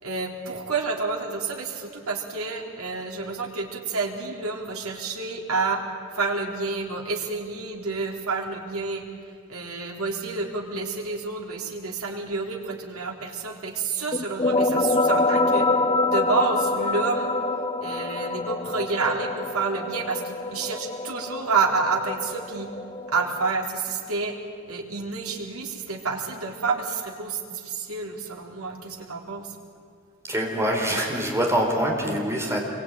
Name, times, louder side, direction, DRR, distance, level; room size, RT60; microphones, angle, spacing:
voice 1, 0.0-5.8 6.1-9.0 9.5-15.7 16.1-17.3 17.8-22.7 23.1-24.3 24.7-29.5, right 4 dB, 80° right, 1 dB, 3.8 m, -29 dB
sound 1, 14.1-23.5, left 2 dB, 25° left, 0.9 m, -26 dB
voice 2, 30.3-32.6, equal, 15° right, 0 dB, 4.4 m, -24 dB
27.5 x 23.5 x 9.2 m, 2.3 s
head